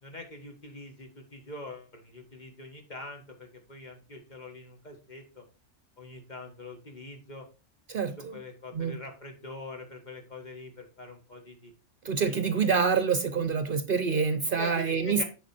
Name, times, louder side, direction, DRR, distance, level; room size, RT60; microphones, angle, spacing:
voice 1, 0.0-5.4 6.0-7.5 8.0-11.7 12.2-12.6 14.6-15.2, left 2 dB, 40° left, 1.7 m, -44 dB
voice 2, 7.9-8.4 8.7-9.0 12.0-15.2, right 5 dB, 50° right, 0.8 m, -27 dB
9.1 x 5.3 x 4.3 m
omnidirectional pair, 1.2 m